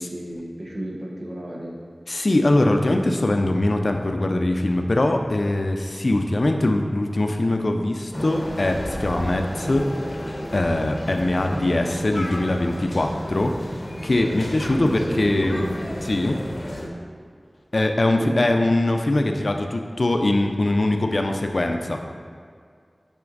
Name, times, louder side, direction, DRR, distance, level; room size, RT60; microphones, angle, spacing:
voice 1, 0.0-1.7 11.5-11.7 14.7-15.6 18.1-18.4, equal, 60° right, -3 dB, 1.0 m, -31 dB
voice 2, 2.1-10.1 10.5-15.7 16.0-16.4 17.7-22.0, left 1 dB, 60° left, 4 dB, 0.4 m, -22 dB
sound 1, 8.1-16.9, left 1 dB, 40° left, 0.8 m, -32 dB
5.7 x 4.3 x 3.9 m, 2.2 s
wide cardioid pair, 60°, 0 cm